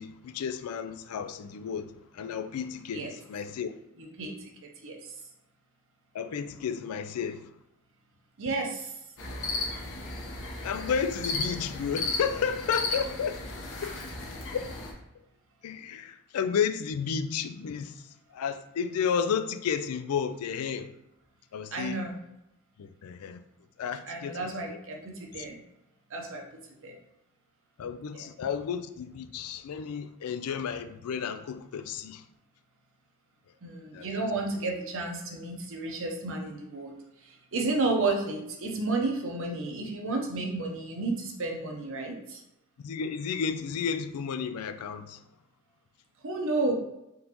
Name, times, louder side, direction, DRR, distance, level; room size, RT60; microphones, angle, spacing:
voice 1, 0.0-3.7 6.1-7.5 10.6-13.4 13.8-14.0 14.5-14.7 15.6-18.0 18.3-20.9 21.5-22.0 22.8-23.4 23.8-24.8 25.4-25.5 27.8-32.2 33.9-34.1 42.8-45.2, left 7 dB, 90° left, 0.4 m, -32 dB
voice 2, 4.0-5.1 8.4-8.9 21.7-22.2 24.0-25.6 26.1-26.4 26.8-27.0 28.1-28.3 33.6-36.9 37.2-42.4 46.2-46.7, right 3 dB, 65° right, 0.8 m, -32 dB
sound 1, 9.2-14.9, left 3 dB, 60° left, 1.0 m, -35 dB
3.8 x 3.7 x 2.9 m
head